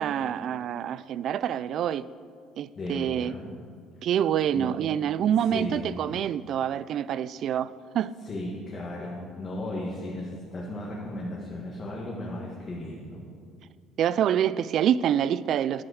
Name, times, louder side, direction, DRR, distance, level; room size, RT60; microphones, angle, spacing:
voice 1, 0.0-2.1 2.6-3.3 4.0-8.1 14.0-15.8, right 9 dB, 50° right, 18 dB, 0.3 m, -26 dB
voice 2, 2.7-3.5 4.5-4.8 5.5-6.0 8.2-13.2, left 1 dB, 30° left, -4 dB, 1.5 m, -35 dB
10.5 x 7.6 x 6.3 m, 2.1 s
cardioid pair, 140°, 0 cm